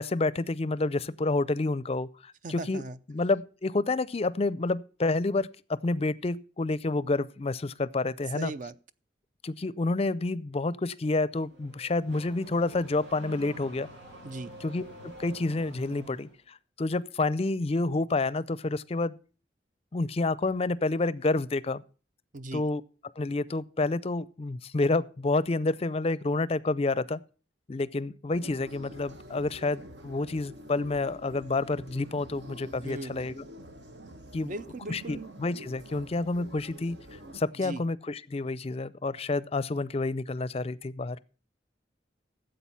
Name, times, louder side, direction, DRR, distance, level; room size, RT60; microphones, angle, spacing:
voice 1, 0.0-2.8 3.1-8.5 9.4-13.9 14.6-19.2 19.9-21.8 22.5-22.8 23.2-27.2 27.7-33.4 34.3-34.5 34.9-37.0 37.3-41.2, left 2 dB, 35° left, 0.5 m, -29 dB
voice 2, 2.4-3.0 8.3-8.7 14.2-14.5 22.3-22.7 32.8-33.2 34.4-35.3 37.6-37.8, right 2 dB, 45° right, 0.6 m, -38 dB
Car / Accelerating revving vroom, 11.4-16.4, right 1 dB, 90° right, 6.6 m, -47 dB
sound 1, 28.3-37.4, right 1 dB, 70° right, 1.3 m, -47 dB
12.5 x 7.9 x 5.6 m
head